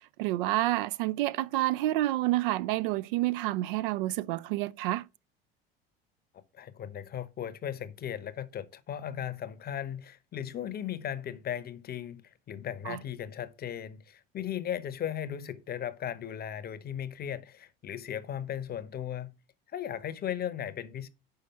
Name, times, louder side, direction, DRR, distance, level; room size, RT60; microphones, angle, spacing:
voice 1, 0.2-5.1 12.9-13.0, right 16 dB, 60° right, 0.4 m, -29 dB
voice 2, 6.3-19.3 19.7-21.1, left 10 dB, 30° left, 0.8 m, -37 dB
5.7 x 5.0 x 5.4 m
figure-of-eight pair, 65°, 30 cm